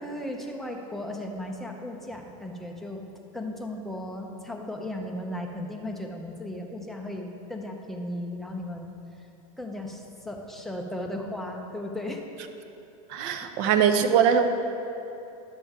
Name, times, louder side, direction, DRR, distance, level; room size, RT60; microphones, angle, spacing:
voice 1, 0.0-3.0 3.3-8.9 9.2-9.3 9.6-12.2 13.4-13.5, left 1 dB, ahead, 1 dB, 0.6 m, -36 dB
voice 2, 13.1-14.4, right 8 dB, 55° right, 8 dB, 0.7 m, -21 dB
10.5 x 7.1 x 3.6 m, 2.9 s
supercardioid pair, 140°, 18 cm